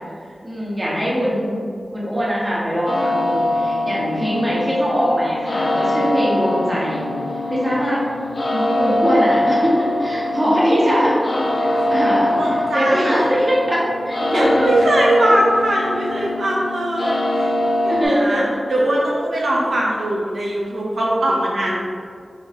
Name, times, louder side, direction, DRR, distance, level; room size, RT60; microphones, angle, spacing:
voice 1, 0.4-1.6 1.9-7.1 7.5-8.1 8.5-11.2 11.5-14.7 15.2-15.3 17.9-18.6 21.4-21.7, equal, 20° right, -7 dB, 1.3 m, -21 dB
sound 1, 2.9-18.1, left 1 dB, 45° left, 0.7 m, -23 dB
voice 2, 12.3-13.3 14.3-17.5 17.8-21.7, right 1 dB, 85° right, -5 dB, 0.8 m, -21 dB
4.0 x 3.4 x 3.7 m, 2.2 s
wide cardioid pair, 85°, 0 cm